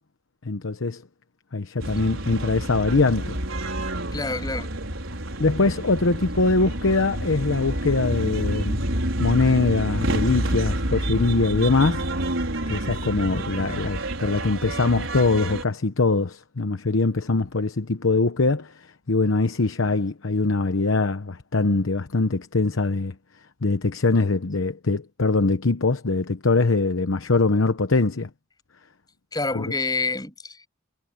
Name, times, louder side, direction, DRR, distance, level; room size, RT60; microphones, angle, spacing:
voice 1, 0.4-1.0 1.5-3.4 5.4-8.9 9.2-12.1 12.7-23.1 23.6-28.3 29.5-29.7, left 3 dB, 85° left, 1.0 m, -22 dB
sound 1, 1.8-15.6, right 1 dB, 80° right, 5.4 m, -28 dB
voice 2, 4.1-4.7 29.3-30.7, left 3 dB, 20° left, 7.1 m, -27 dB
head